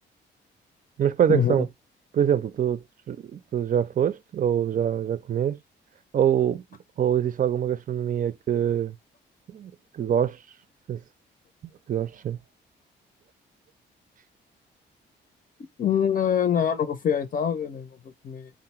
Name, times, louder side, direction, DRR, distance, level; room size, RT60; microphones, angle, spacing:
voice 1, 1.0-1.7 2.1-5.6 6.1-6.6 7.0-9.0 9.5-10.4 10.9-11.0 11.9-12.4, right 9 dB, 45° right, 0.5 m, -24 dB
voice 2, 15.8-18.5, left 8 dB, 45° left, 0.6 m, -25 dB
3.8 x 2.1 x 4.2 m
cardioid pair, 90°, 20 cm